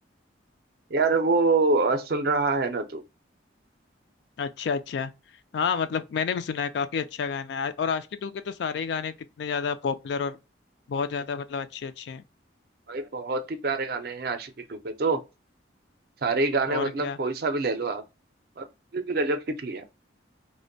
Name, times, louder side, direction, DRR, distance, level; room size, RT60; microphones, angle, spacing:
voice 1, 0.9-3.0 12.9-15.2 16.2-18.0 18.6-18.7 18.9-19.8, right 3 dB, 55° right, 0.4 m, -26 dB
voice 2, 4.4-5.1 5.5-10.4 10.9-12.2 16.7-17.2, left 6 dB, 65° left, 0.3 m, -30 dB
2.4 x 2.1 x 2.5 m
head